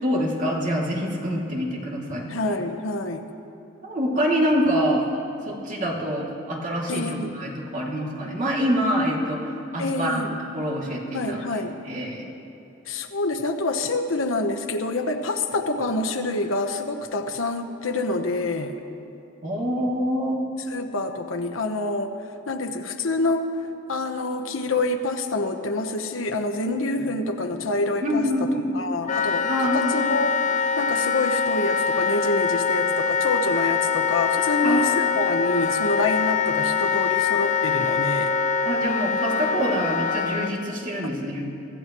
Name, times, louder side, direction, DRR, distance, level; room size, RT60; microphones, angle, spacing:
voice 1, 0.0-2.3 3.8-5.0 5.5-11.6 11.9-12.2 19.4-20.4 28.0-28.7 29.4-29.9 34.6-35.2 38.6-41.5, equal, 40° right, -3 dB, 2.5 m, -26 dB
voice 2, 2.3-3.3 6.9-7.3 9.8-10.3 11.1-11.8 12.9-18.7 20.7-22.1 22.5-23.5 23.9-28.5 28.7-30.4 30.8-38.3 41.0-41.1, left 2 dB, 90° left, 5 dB, 1.0 m, -27 dB
Wind instrument woodwind instrument, 29.1-40.5, left 6 dB, 40° left, 0.5 m, -24 dB
24.5 x 15.0 x 3.1 m, 2.8 s
head